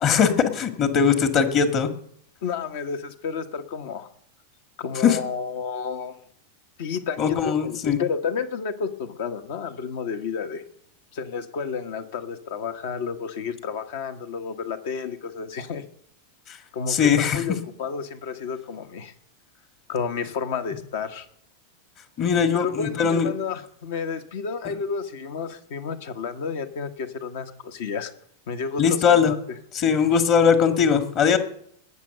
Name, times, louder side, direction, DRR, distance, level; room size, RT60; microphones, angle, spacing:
voice 1, 0.0-1.9 5.0-5.2 7.2-8.0 16.9-17.4 22.2-23.3 28.8-29.3 29.8-31.4, left 7 dB, 35° left, 8 dB, 1.7 m, -20 dB
voice 2, 2.4-4.1 4.8-6.1 6.8-10.6 11.1-15.8 16.7-19.1 19.9-21.3 22.5-28.1 28.5-29.6, left 6 dB, 55° left, 8 dB, 1.2 m, -31 dB
19.5 x 7.0 x 6.6 m, 0.67 s
figure-of-eight pair, 90°, 0 cm